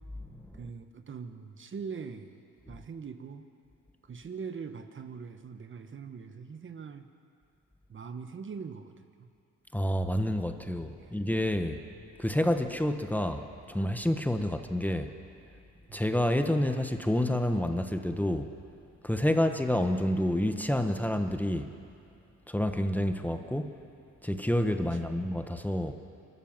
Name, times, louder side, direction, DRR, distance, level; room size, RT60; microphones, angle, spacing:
voice 1, 0.5-2.3 2.7-3.5 4.0-7.1 7.9-9.3 11.0-11.3 14.4-14.5 15.9-16.0 19.3-19.4 24.9-25.2, right 5 dB, 40° right, 9 dB, 1.3 m, -42 dB
voice 2, 9.7-11.8 12.2-15.1 15.9-18.5 19.0-21.7 22.5-23.7 24.2-25.9, left 1 dB, 5° left, 6 dB, 1.2 m, -28 dB
29.0 x 12.5 x 7.5 m, 2.6 s
cardioid pair, 90°, 30 cm